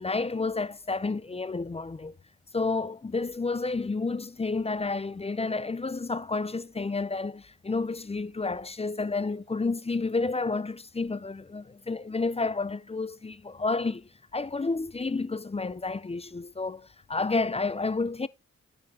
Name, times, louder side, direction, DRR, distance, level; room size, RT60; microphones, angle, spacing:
voice 1, 0.0-2.1 2.5-18.3, left 3 dB, 20° left, 0.5 m, -30 dB
10.5 x 5.3 x 4.1 m
cardioid pair, 70°, 29 cm